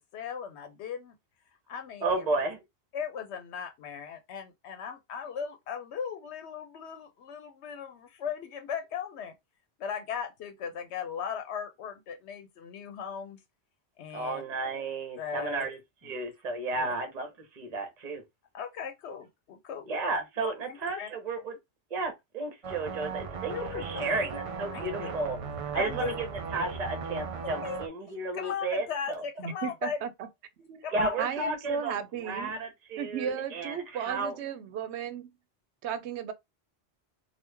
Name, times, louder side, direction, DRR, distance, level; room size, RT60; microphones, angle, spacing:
voice 1, 0.1-1.1 1.7-2.3 2.9-9.3 9.8-13.4 14.0-14.4 15.2-15.6 16.8-16.9 18.5-19.9 20.4-21.1 23.5-24.2 24.7-25.1 25.7-26.2 27.6-27.8 28.3-30.0 30.8-31.2, left 7 dB, 90° left, 0.9 m, -37 dB
voice 2, 2.0-2.6 14.1-18.2 19.9-21.5 21.9-25.4 25.6-29.2 30.9-32.0 32.2-34.3, right 3 dB, 40° right, 1.0 m, -33 dB
sound 1, 22.6-27.9, right 5 dB, 60° right, 0.3 m, -37 dB
voice 3, 29.4-30.3 30.6-30.9 31.2-32.5 33.0-35.3 35.8-36.3, right 7 dB, 85° right, 0.9 m, -35 dB
3.0 x 2.4 x 3.3 m
omnidirectional pair, 1.1 m